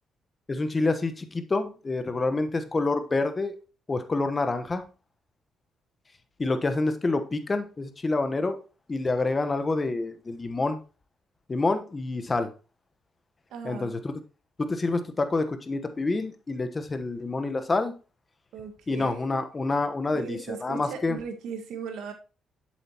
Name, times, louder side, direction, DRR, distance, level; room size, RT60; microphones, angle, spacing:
voice 1, 0.5-3.6 3.9-4.8 6.4-8.6 8.9-10.8 11.5-12.5 13.6-14.1 14.6-17.9 18.9-21.2, left 3 dB, 25° left, 1.1 m, -27 dB
voice 2, 13.5-14.0 18.5-19.4 20.1-22.1, right 6 dB, 80° right, 1.6 m, -37 dB
7.9 x 7.4 x 2.9 m
cardioid pair, 90°, 0 cm